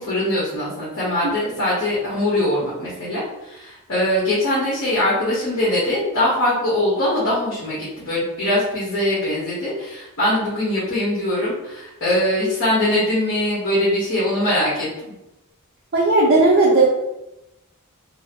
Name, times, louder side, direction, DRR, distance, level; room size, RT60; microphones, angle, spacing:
voice 1, 0.0-14.9, left 1 dB, 60° left, -8 dB, 1.0 m, -22 dB
voice 2, 15.9-16.9, right 2 dB, 45° right, -5 dB, 0.5 m, -15 dB
2.8 x 2.5 x 2.8 m, 0.93 s
head